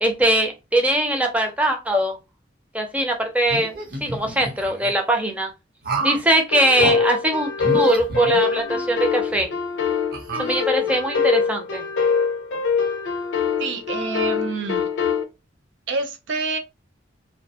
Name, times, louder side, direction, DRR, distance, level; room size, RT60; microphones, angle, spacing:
voice 1, 0.0-2.2 2.7-5.5 6.0-9.5 10.4-11.8, right 1 dB, 5° right, 0.5 m, -21 dB
sound 1, 3.5-4.9 5.8-6.3 6.8-7.0 7.6-8.8 9.3-9.4 10.1-11.0, right 2 dB, 55° right, 0.8 m, -30 dB
sound 2, 6.5-15.2, left 6 dB, 80° left, 0.5 m, -24 dB
voice 2, 13.6-14.9 15.9-16.6, right 4 dB, 70° right, 0.5 m, -27 dB
2.3 x 2.1 x 2.7 m
head